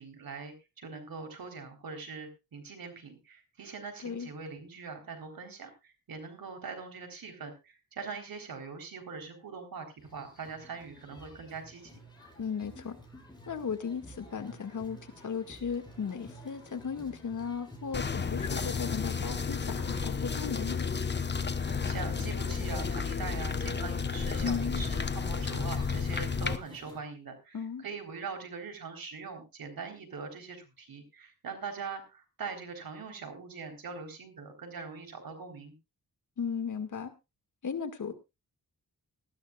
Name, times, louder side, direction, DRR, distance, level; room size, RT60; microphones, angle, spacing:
voice 1, 0.0-12.0 21.9-35.7, right 5 dB, 75° right, 5 dB, 4.0 m, -42 dB
sound 1, 10.0-27.0, right 1 dB, 10° left, 7.6 m, -51 dB
voice 2, 12.4-13.0 13.5-20.8 24.4-24.9 27.5-27.8 36.4-37.1 37.6-38.1, left 6 dB, 55° left, 7 dB, 2.1 m, -36 dB
sound 2, 17.9-26.6, left 5 dB, 30° left, 1.1 m, -32 dB
19.0 x 13.5 x 2.4 m, 0.26 s
cardioid pair, 90°, 35 cm